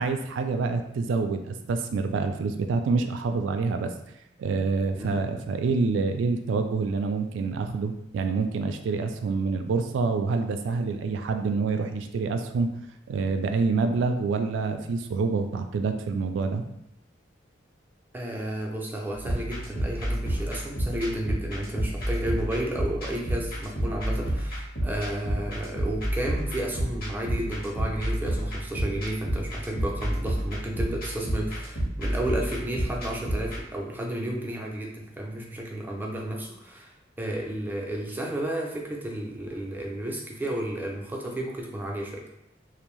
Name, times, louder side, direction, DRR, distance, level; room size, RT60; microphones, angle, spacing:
voice 1, 0.0-3.9 4.4-12.7 13.1-16.6, right 4 dB, 85° right, 6 dB, 0.3 m, -27 dB
voice 2, 18.1-42.3, right 1 dB, 10° right, -2 dB, 0.4 m, -32 dB
sound 1, 19.2-33.6, right 1 dB, 55° left, 0.9 m, -30 dB
2.6 x 2.0 x 3.0 m, 0.82 s
head